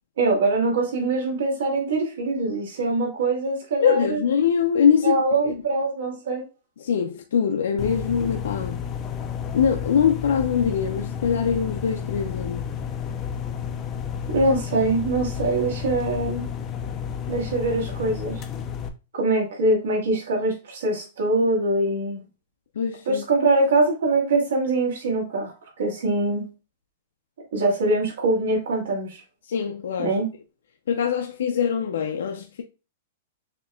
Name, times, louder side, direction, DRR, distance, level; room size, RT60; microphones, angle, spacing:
voice 1, 0.2-4.2 5.0-6.4 14.3-16.5 17.3-18.4 19.1-22.2 23.1-26.5 27.5-29.2 30.0-30.3, right 2 dB, 75° right, 2.3 m, -23 dB
voice 2, 3.8-5.5 6.8-8.8 9.5-12.7 22.8-23.2 29.5-30.2 30.9-32.6, left 7 dB, 75° left, 0.5 m, -23 dB
sound 1, 7.8-18.9, left 8 dB, 20° left, 0.4 m, -31 dB
6.6 x 2.9 x 2.3 m
supercardioid pair, 175°, 0 cm